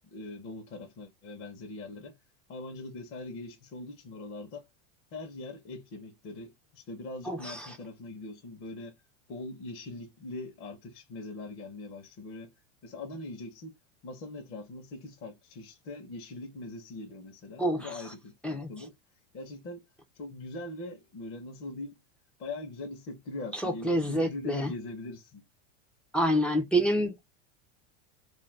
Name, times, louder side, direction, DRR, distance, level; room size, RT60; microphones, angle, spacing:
voice 1, 0.1-2.2 2.5-4.7 5.1-9.0 9.3-12.5 12.8-13.7 14.0-18.9 19.3-19.8 20.2-22.0 22.4-25.4, left 2 dB, 35° left, 0.9 m, -42 dB
voice 2, 7.3-7.8 17.6-17.9 18.4-18.7 23.5-24.7 26.1-27.3, equal, 5° left, 0.5 m, -28 dB
2.5 x 2.2 x 3.2 m
supercardioid pair, 145°, 38 cm